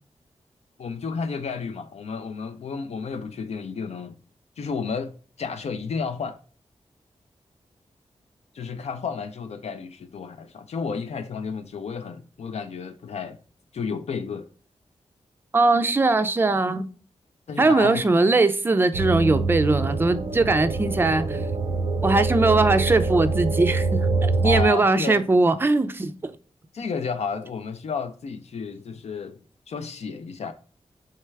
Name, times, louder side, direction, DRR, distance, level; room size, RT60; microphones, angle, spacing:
voice 1, 0.8-4.2 4.6-6.4 8.5-13.4 13.7-14.5 17.5-18.2 24.4-25.2 26.7-29.4 29.7-30.5, left 5 dB, 70° left, 0.4 m, -32 dB
voice 2, 15.5-16.9 17.6-21.5 22.0-26.3, right 3 dB, 20° right, 0.4 m, -20 dB
sound 1, 18.9-24.6, right 3 dB, 80° right, 0.5 m, -25 dB
3.4 x 3.2 x 3.2 m
wide cardioid pair, 100°, 12 cm